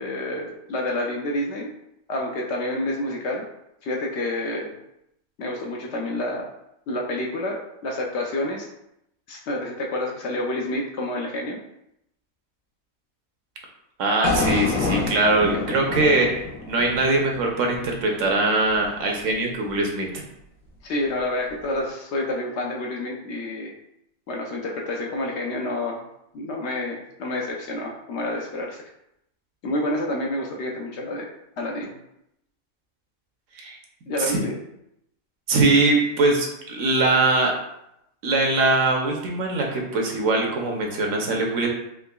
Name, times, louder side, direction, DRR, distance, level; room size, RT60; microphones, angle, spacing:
voice 1, 0.0-1.7 2.1-3.4 3.8-4.8 5.4-6.5 6.9-8.7 9.3-11.6 15.5-15.6 20.8-23.7 24.3-26.0 26.3-28.8 29.6-31.3 31.6-32.0 34.1-34.5, left 1 dB, 65° left, -1 dB, 0.7 m, -28 dB
voice 2, 14.0-20.1 33.5-33.8 34.2-34.5 35.5-37.6 38.2-41.7, right 2 dB, 70° right, 1 dB, 0.9 m, -22 dB
sound 1, 14.2-18.4, left 3 dB, 85° left, 1.1 m, -28 dB
3.6 x 3.0 x 2.2 m, 0.81 s
omnidirectional pair, 1.4 m